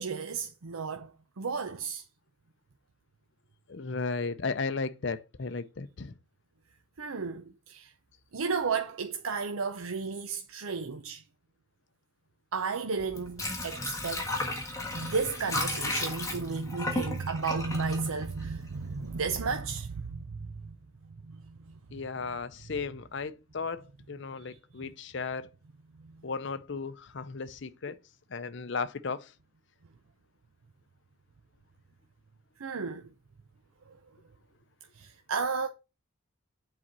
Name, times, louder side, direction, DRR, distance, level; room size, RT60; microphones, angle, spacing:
voice 1, 0.0-2.0 7.0-7.9 8.3-11.2 12.5-14.5 14.9-20.7 21.3-21.6 24.4-24.6 32.6-33.1 33.9-34.0 34.9-35.7, right 4 dB, 85° right, 0.6 m, -33 dB
voice 2, 3.7-6.1 21.9-25.5 26.2-28.0 28.3-29.3, left 4 dB, 55° left, 0.6 m, -35 dB
Water / Sink (filling or washing), 13.0-18.9 19.2-19.3, left 2 dB, 15° left, 1.6 m, -34 dB
7.6 x 4.2 x 6.1 m
head